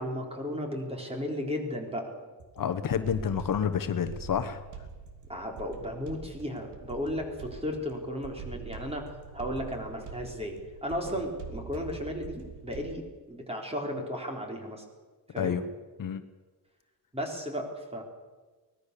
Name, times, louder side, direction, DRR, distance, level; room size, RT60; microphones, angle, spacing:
voice 1, 0.0-2.1 5.3-9.1 9.3-14.8 15.3-15.6 17.1-18.0, equal, 15° right, 2 dB, 4.0 m, -35 dB
sound 1, 2.4-13.1, right 5 dB, 80° right, 3.2 m, -45 dB
voice 2, 2.6-4.6 11.0-11.2 15.4-15.6 16.0-16.2, left 8 dB, 55° left, 10 dB, 1.1 m, -29 dB
23.5 x 19.5 x 6.9 m, 1.3 s
wide cardioid pair, 170°, 40 cm